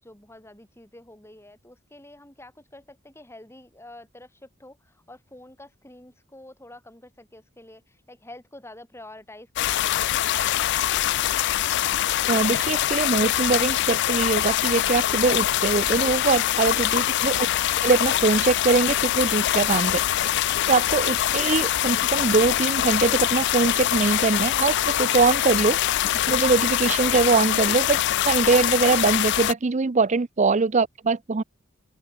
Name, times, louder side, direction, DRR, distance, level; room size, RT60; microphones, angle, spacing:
voice 1, 0.0-10.3 30.1-30.2, left 1 dB, 10° left, 3.9 m, -47 dB
sound 1, 9.6-29.5, left 12 dB, 55° left, 0.3 m, -24 dB
voice 2, 12.3-17.4 17.8-20.0 20.7-25.8 26.3-28.0 28.2-31.4, right 4 dB, 35° right, 0.5 m, -22 dB
open air
head